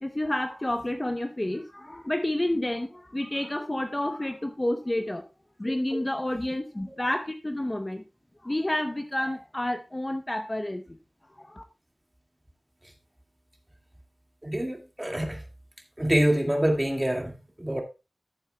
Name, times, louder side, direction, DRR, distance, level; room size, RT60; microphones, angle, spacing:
voice 1, 0.0-5.3 5.6-8.0 8.4-11.0 11.4-11.6, left 1 dB, 25° left, 0.8 m, -30 dB
voice 2, 14.4-15.4 16.0-17.8, right 1 dB, 15° right, 2.0 m, -26 dB
14.0 x 7.2 x 2.3 m
wide cardioid pair, 60°, 0 cm